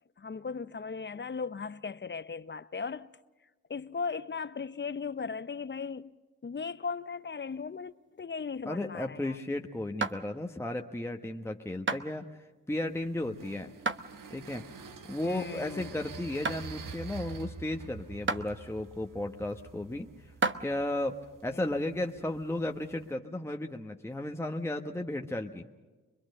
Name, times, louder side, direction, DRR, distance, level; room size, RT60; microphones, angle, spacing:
voice 1, 0.2-3.1 3.7-6.2 6.4-9.4 15.2-15.9 21.5-21.6, left 5 dB, 35° left, 0.6 m, -37 dB
sound 1, 7.7-9.4 10.0-10.6 11.1-11.4 11.9-12.1 12.8-13.2 13.8-14.1 14.5-14.6 15.3-15.4 15.9-16.1 16.4-16.7 17.4-17.5 18.3-18.5 19.3-19.4 20.2-20.6, right 4 dB, 35° right, 1.0 m, -32 dB
voice 2, 8.6-12.3 12.7-13.7 14.3-14.7 15.1-20.1 20.6-25.7, left 1 dB, 10° left, 1.2 m, -34 dB
sound 2, 12.7-23.1, right 5 dB, 65° right, 1.3 m, -47 dB
24.5 x 21.5 x 6.6 m
cardioid pair, 55°, 34 cm